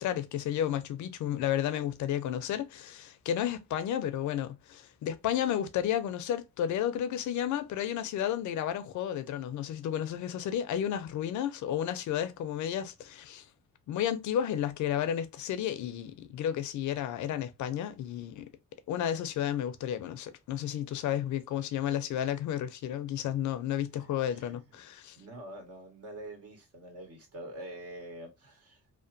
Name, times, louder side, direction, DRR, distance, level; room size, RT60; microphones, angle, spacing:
voice 1, 0.0-13.4 13.9-18.5 18.9-25.2, left 10 dB, 75° left, 0.6 m, -32 dB
voice 2, 23.9-24.7 25.1-28.8, right 1 dB, 50° right, 1.6 m, -46 dB
2.9 x 2.1 x 2.6 m
cardioid pair, 90°, 30 cm